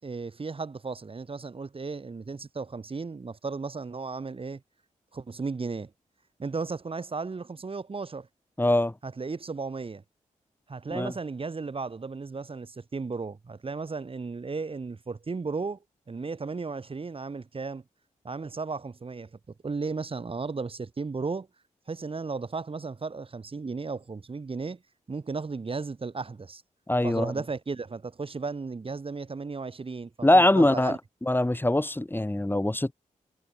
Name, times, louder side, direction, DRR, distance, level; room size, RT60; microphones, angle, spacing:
voice 1, 0.0-4.6 5.1-5.9 6.4-8.3 9.0-10.0 10.7-15.8 16.1-17.8 18.2-19.3 19.6-21.5 21.9-24.8 25.1-26.6 27.0-31.0, right 4 dB, 45° right, 3.1 m, -35 dB
voice 2, 8.6-8.9 10.9-11.1 26.9-27.3 30.2-31.0 31.2-32.9, left 1 dB, 15° left, 4.1 m, -22 dB
cardioid pair, 55°, 14 cm